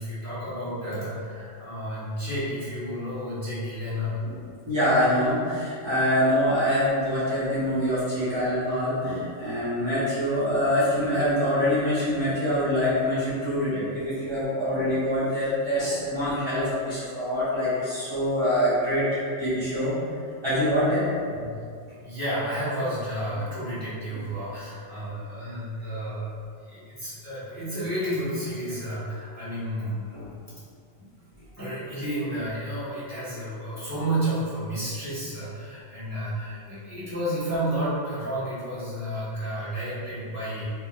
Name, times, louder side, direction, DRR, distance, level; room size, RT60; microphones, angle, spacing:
voice 1, 0.0-4.2 13.7-13.8 21.3-21.4 22.0-26.3 26.7-30.0 31.0-31.1 31.6-40.6, right 1 dB, 15° left, -13 dB, 1.3 m, -31 dB
voice 2, 4.6-19.9 20.4-21.1 24.1-24.2 30.1-30.3, equal, 25° right, -13 dB, 1.2 m, -25 dB
4.7 x 2.8 x 2.5 m, 2.3 s
omnidirectional pair, 1.2 m